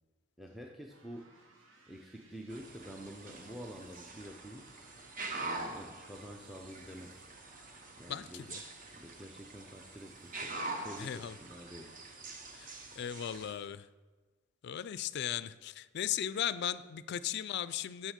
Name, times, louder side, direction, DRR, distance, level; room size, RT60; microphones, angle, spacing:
voice 1, 0.4-1.3 1.9-4.7 5.4-7.2 8.0-8.4 8.9-10.6 10.8-12.0, equal, ahead, 1 dB, 0.5 m, -48 dB
sound 1, 0.9-13.7, right 2 dB, 70° right, 1.3 m, -64 dB
sound 2, 2.5-13.5, right 2 dB, 45° right, 0.9 m, -45 dB
voice 2, 8.1-8.7 11.0-11.3 12.5-12.7 13.0-13.9 14.6-18.1, left 10 dB, 55° left, 15 dB, 0.3 m, -37 dB
7.3 x 6.2 x 6.5 m, 1.3 s
head